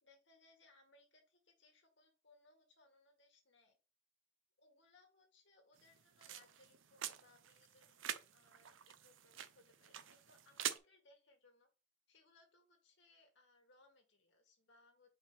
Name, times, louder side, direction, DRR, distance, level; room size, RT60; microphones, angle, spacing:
voice 1, 0.0-3.8 4.6-8.0 8.3-11.7 12.1-15.1, left 2 dB, 70° left, 2 dB, 2.1 m, -69 dB
sound 1, 5.8-10.8, right 10 dB, 90° right, 0.7 m, -47 dB
5.1 x 3.6 x 5.6 m, 0.31 s
head